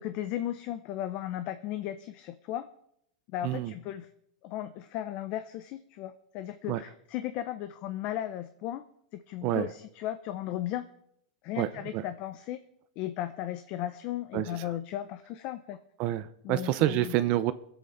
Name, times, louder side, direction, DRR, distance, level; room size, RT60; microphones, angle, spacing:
voice 1, 0.0-2.7 3.3-4.1 4.4-8.8 9.1-10.9 11.4-12.6 13.0-15.8 16.4-17.1, left 12 dB, 40° left, 10 dB, 0.6 m, -36 dB
voice 2, 14.3-14.7 16.0-17.5, right 14 dB, 40° right, 13 dB, 0.5 m, -28 dB
22.0 x 8.0 x 3.9 m, 0.75 s
supercardioid pair, 150°, 4 cm